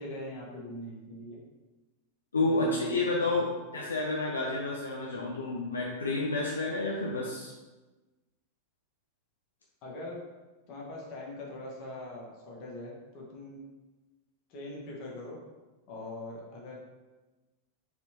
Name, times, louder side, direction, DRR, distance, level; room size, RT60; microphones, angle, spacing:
voice 1, 0.0-1.4 2.4-3.5 9.8-10.2 10.7-13.6 14.5-15.4 15.9-16.8, left 1 dB, 40° left, -3 dB, 1.2 m, -42 dB
voice 2, 2.3-3.5 3.7-7.5, left 2 dB, 75° left, -2 dB, 0.5 m, -30 dB
4.1 x 3.4 x 3.0 m, 1.2 s
figure-of-eight pair, 90°, 0 cm